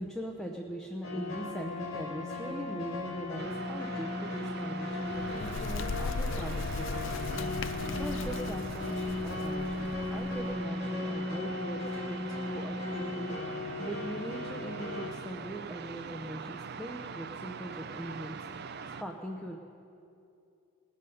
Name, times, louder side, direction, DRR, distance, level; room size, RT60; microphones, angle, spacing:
voice 1, 0.0-18.7 19.0-19.6, right 1 dB, ahead, 0 dB, 0.6 m, -41 dB
sound 1, 1.0-15.1, left 2 dB, 75° left, 2.5 m, -36 dB
sound 2, 3.4-19.0, right 5 dB, 50° right, 0.5 m, -43 dB
Bird, 4.9-10.7, left 4 dB, 55° left, 0.4 m, -38 dB
20.0 x 7.8 x 5.3 m, 2.6 s
head